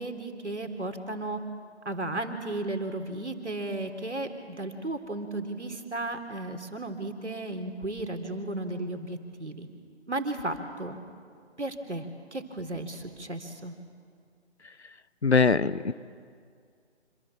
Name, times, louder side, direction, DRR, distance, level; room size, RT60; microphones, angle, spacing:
voice 1, 0.0-1.4 1.8-9.7 10.1-11.0 11.6-13.7, right 2 dB, 75° right, 5 dB, 3.4 m, -34 dB
voice 2, 15.2-15.9, left 5 dB, 70° left, 16 dB, 0.9 m, -22 dB
26.5 x 26.5 x 7.5 m, 2.2 s
figure-of-eight pair, 150°, 35 cm